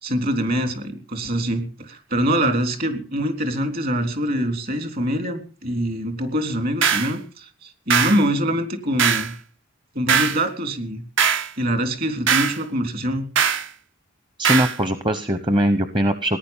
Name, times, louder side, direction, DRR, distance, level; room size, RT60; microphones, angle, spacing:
voice 1, 0.0-9.4 10.0-11.0 11.6-13.3, equal, 50° right, 6 dB, 3.5 m, -24 dB
sound 1, 6.8-7.1 7.9-8.2 9.0-9.3 10.1-10.4 11.2-11.5 12.3-12.6 13.4-13.7 14.4-14.8, right 7 dB, 70° right, 1.1 m, -20 dB
voice 2, 14.4-16.4, equal, 25° right, 10 dB, 0.9 m, -21 dB
18.0 x 10.5 x 7.3 m, 0.40 s
head